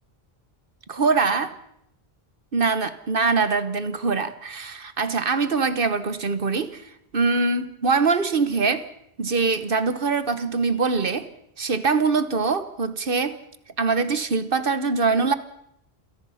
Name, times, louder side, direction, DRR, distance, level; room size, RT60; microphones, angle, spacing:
voice 1, 0.9-1.5 2.5-8.9 9.2-11.3 11.6-13.4 13.8-15.3, right 4 dB, 60° right, 12 dB, 1.3 m, -23 dB
28.0 x 17.5 x 5.7 m, 0.76 s
omnidirectional pair, 1.1 m